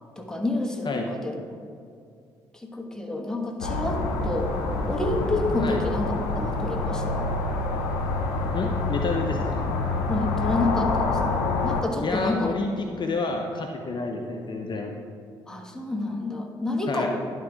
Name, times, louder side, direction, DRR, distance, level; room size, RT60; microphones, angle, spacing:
voice 1, 0.2-1.4 2.5-4.5 4.9-7.3 10.1-12.5 15.5-17.1, left 2 dB, 5° left, 1 dB, 1.3 m, -29 dB
sound 1, 3.6-11.8, left 3 dB, 85° left, 0.7 m, -27 dB
voice 2, 8.5-9.6 12.0-14.9 16.9-17.1, left 3 dB, 45° left, 3 dB, 0.7 m, -29 dB
11.0 x 3.7 x 4.9 m, 2.3 s
hypercardioid pair, 50°, 11 cm